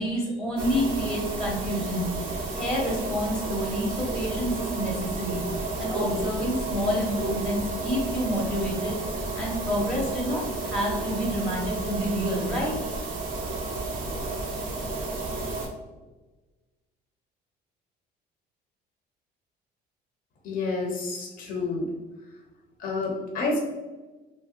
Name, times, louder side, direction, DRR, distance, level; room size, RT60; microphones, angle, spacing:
voice 1, 0.0-2.1 2.5-5.4 5.8-9.0 9.3-12.8, equal, 5° left, -4 dB, 0.9 m, -28 dB
sound 1, 0.6-15.7, right 2 dB, 55° right, 0.7 m, -31 dB
voice 2, 20.4-21.9 22.8-23.6, left 3 dB, 55° left, 0 dB, 0.6 m, -29 dB
3.1 x 2.7 x 2.5 m, 1.2 s
cardioid pair, 170°, 17 cm